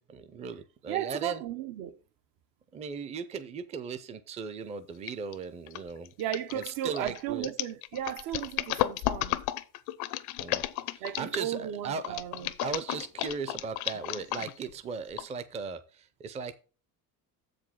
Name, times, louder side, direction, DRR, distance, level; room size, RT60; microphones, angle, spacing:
voice 1, 0.1-1.4 2.7-6.1 6.5-7.5 10.4-12.2 12.6-16.5, right 5 dB, 20° right, 0.5 m, -37 dB
voice 2, 0.9-2.0 6.2-9.4 11.0-12.5, right 11 dB, 65° right, 0.8 m, -35 dB
sound 1, 5.1-5.3 5.7-11.5 12.0-14.7 15.2-15.3, left 16 dB, 90° left, 0.7 m, -33 dB
7.5 x 5.1 x 5.6 m
cardioid pair, 170°, 36 cm